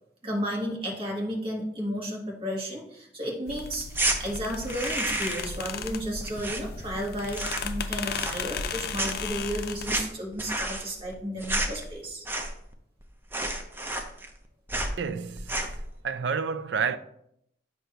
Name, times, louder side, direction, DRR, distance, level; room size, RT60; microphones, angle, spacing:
voice 1, 0.2-12.2, equal, 30° right, 1.5 m, -33 dB
sound 1, 3.5-10.0, left 5 dB, 55° left, 0.5 m, -35 dB
sound 2, 3.9-4.2 4.6-5.6 5.8-7.0 7.3-7.8 8.1-8.7 8.9-12.7 13.0-13.1 13.3-14.4 14.7-15.0 15.4-15.8, right 2 dB, 10° right, 0.6 m, -31 dB
voice 2, 15.0-15.6 16.0-17.0, right 6 dB, 70° right, 0.4 m, -29 dB
7.8 x 2.7 x 5.7 m
head